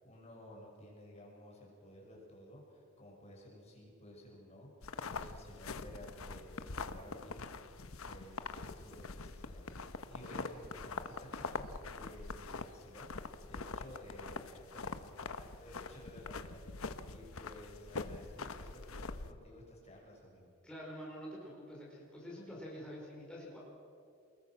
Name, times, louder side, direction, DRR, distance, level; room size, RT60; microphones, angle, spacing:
voice 1, 0.0-20.5, left 1 dB, 30° left, -2 dB, 6.2 m, -54 dB
sound 1, 4.8-19.3, left 4 dB, 75° left, 1.0 m, -44 dB
voice 2, 20.6-23.6, equal, 5° left, -5 dB, 5.0 m, -47 dB
29.0 x 21.5 x 6.2 m, 2.6 s
head